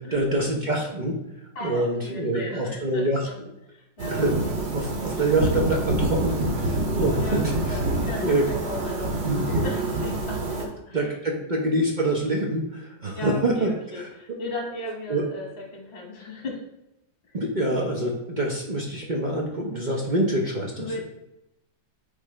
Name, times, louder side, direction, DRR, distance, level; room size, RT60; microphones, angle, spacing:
voice 1, 0.1-1.2 1.6-3.3 4.1-4.4 4.7-7.4 8.2-8.4 9.2-9.4 10.9-14.4 15.1-15.2 17.3-21.0, right 1 dB, 40° right, -1 dB, 0.7 m, -26 dB
voice 2, 1.5-4.5 7.2-11.2 13.1-15.5 15.7-16.6 20.8-21.0, left 2 dB, 35° left, -1 dB, 1.8 m, -36 dB
sound 1, 4.0-10.6, right 2 dB, 85° right, 1.8 m, -26 dB
8.8 x 3.7 x 3.2 m, 0.89 s
omnidirectional pair, 1.9 m